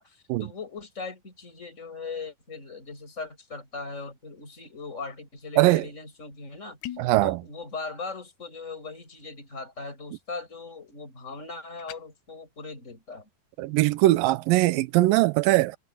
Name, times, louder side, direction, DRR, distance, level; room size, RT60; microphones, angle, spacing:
voice 1, 0.0-7.0 7.2-13.3, left 4 dB, 20° left, 7.5 m, -39 dB
sound 1, 6.8-7.2 11.8-12.0, left 13 dB, 70° left, 2.0 m, -39 dB
voice 2, 7.0-7.4 13.6-15.8, right 18 dB, 85° right, 2.4 m, -21 dB
omnidirectional pair, 4.0 m